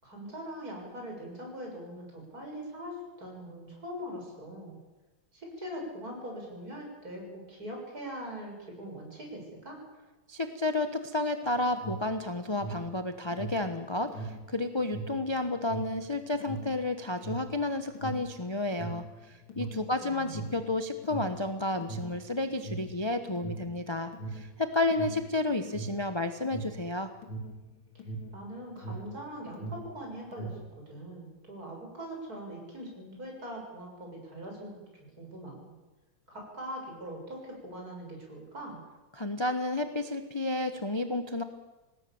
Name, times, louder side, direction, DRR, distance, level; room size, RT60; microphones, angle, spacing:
voice 1, 0.0-4.8 5.3-9.8 20.0-20.6 28.3-34.8 35.2-35.7 36.3-38.8, equal, 45° right, 0 dB, 7.8 m, -42 dB
voice 2, 10.3-27.1 39.1-41.4, left 2 dB, 20° left, 8 dB, 0.8 m, -31 dB
Alarm, 11.4-29.2 29.5-30.8, right 2 dB, 70° left, 3.7 m, -40 dB
26.5 x 19.0 x 7.2 m, 1.1 s
omnidirectional pair, 2.3 m